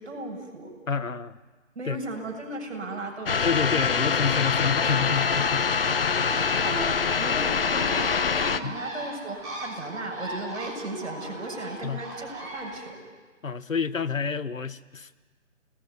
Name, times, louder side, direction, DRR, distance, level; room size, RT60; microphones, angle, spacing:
voice 1, 0.0-0.7 1.7-3.6 6.3-13.0, right 2 dB, 55° right, 2 dB, 7.8 m, -36 dB
voice 2, 0.9-1.4 1.9-2.0 3.4-5.7 8.6-8.7 11.8-12.0 13.4-15.2, left 6 dB, 80° left, 14 dB, 1.3 m, -28 dB
sound 1, 3.3-8.6, left 6 dB, 45° left, 1.0 m, -24 dB
Bird, 3.5-12.8, right 1 dB, 10° right, 4.5 m, -40 dB
30.0 x 20.5 x 9.5 m, 1.4 s
figure-of-eight pair, 155°, 39 cm